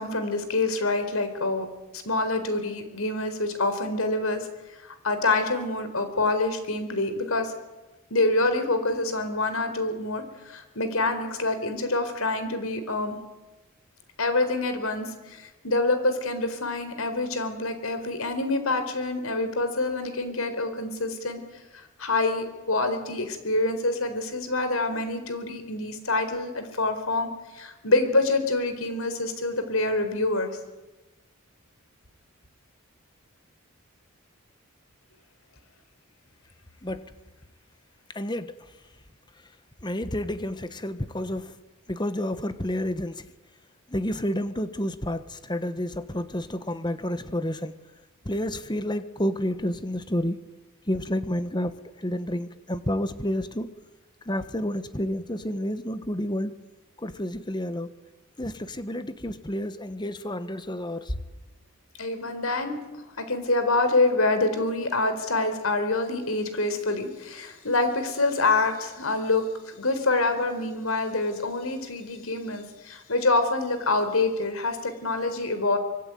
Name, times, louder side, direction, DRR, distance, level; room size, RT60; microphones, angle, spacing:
voice 1, 0.0-1.7 1.9-4.5 4.8-7.5 8.1-13.2 14.2-21.4 21.7-30.5 62.0-62.8 63.2-69.4 69.7-75.8, left 2 dB, 75° left, 9 dB, 4.3 m, -26 dB
voice 2, 38.1-38.5 39.8-41.5 41.9-43.2 43.9-47.8 48.2-50.4 50.9-53.7 54.2-56.5 57.0-57.9 58.4-61.2, left 1 dB, 20° left, 11 dB, 1.3 m, -30 dB
25.0 x 23.5 x 9.3 m, 1.1 s
head